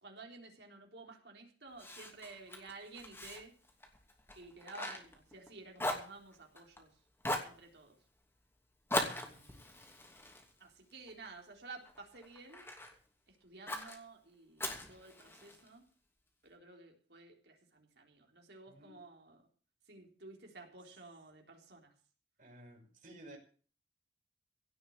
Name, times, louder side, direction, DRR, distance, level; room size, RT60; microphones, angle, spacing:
voice 1, 0.0-3.5 4.4-6.9 7.4-7.9 8.9-9.7 10.6-12.7 13.3-15.8 16.4-19.4 19.9-21.9, right 3 dB, 65° right, 2 dB, 3.9 m, -53 dB
Fire, 1.8-5.5 5.8-6.8 7.2-7.6 8.9-11.3 11.8-12.9 13.7-14.0 14.6-15.7, left 1 dB, 15° left, 2.7 m, -40 dB
voice 2, 9.0-9.5 18.7-19.0 22.4-23.4, right 1 dB, 50° right, 1 dB, 5.7 m, -55 dB
17.0 x 6.6 x 8.9 m, 0.41 s
head